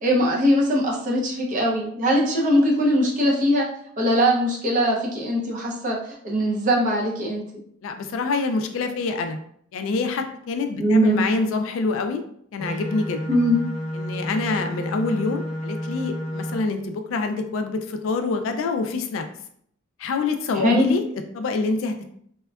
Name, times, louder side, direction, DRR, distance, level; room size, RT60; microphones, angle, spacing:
voice 1, 0.0-3.6 4.0-7.4 10.8-11.2 13.3-13.6 20.5-20.9, equal, 35° right, -2 dB, 0.6 m, -21 dB
voice 2, 7.8-9.4 9.7-12.2 12.5-13.2 13.9-19.2 20.0-21.0 21.3-22.1, left 3 dB, 60° left, 7 dB, 0.3 m, -26 dB
sound 1, 12.6-16.6, equal, 20° right, 0.9 m, -30 dB
3.5 x 2.1 x 2.3 m, 0.66 s
head